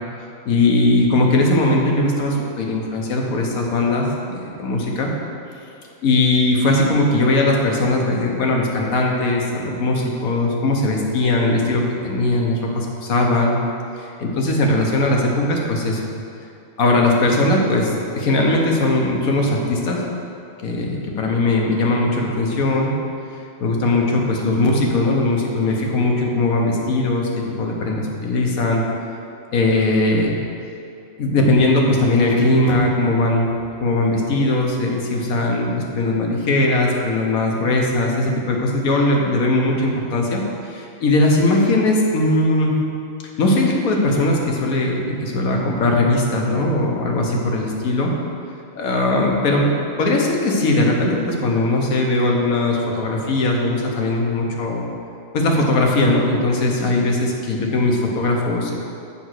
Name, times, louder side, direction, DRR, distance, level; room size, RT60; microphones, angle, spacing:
voice 1, 0.4-5.1 6.0-13.6 14.0-16.0 16.8-20.0 20.6-22.9 23.6-27.3 27.6-28.8 29.5-30.3 31.2-33.5 33.8-42.8 43.4-48.1 48.8-49.7 50.0-54.9 55.3-58.8, left 2 dB, 85° left, 0 dB, 1.5 m, -19 dB
6.9 x 5.1 x 6.4 m, 2.6 s
omnidirectional pair, 1.4 m